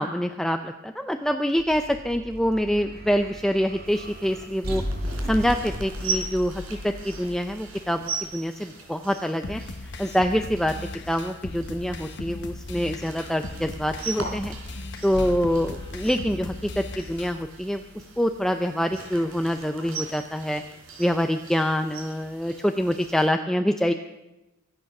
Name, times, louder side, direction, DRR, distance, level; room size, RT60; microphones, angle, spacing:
voice 1, 0.0-4.8 5.2-9.6 10.0-10.7 11.1-17.8 18.2-20.6 21.0-23.9, equal, ahead, 5 dB, 0.5 m, -25 dB
sound 1, 1.6-8.9 15.1-19.2, left 1 dB, 45° right, 2.3 m, -37 dB
sound 2, 3.8-23.3, right 4 dB, 80° right, 3.8 m, -40 dB
sound 3, 9.4-17.4, left 2 dB, 55° left, 1.1 m, -38 dB
24.0 x 9.0 x 5.9 m, 1.0 s
head